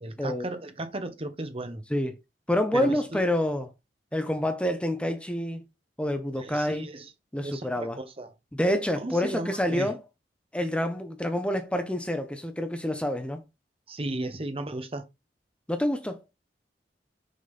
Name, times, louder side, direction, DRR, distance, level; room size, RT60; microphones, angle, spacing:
voice 1, 0.0-1.8 2.7-3.2 6.3-7.1 7.4-8.3 9.0-9.9 13.9-15.1, right 2 dB, 35° right, 1.1 m, -35 dB
voice 2, 2.5-3.7 4.1-5.7 6.0-6.9 7.3-8.0 8.5-10.0 10.5-13.4 15.7-16.2, left 1 dB, 5° left, 0.9 m, -27 dB
6.5 x 3.9 x 5.4 m
head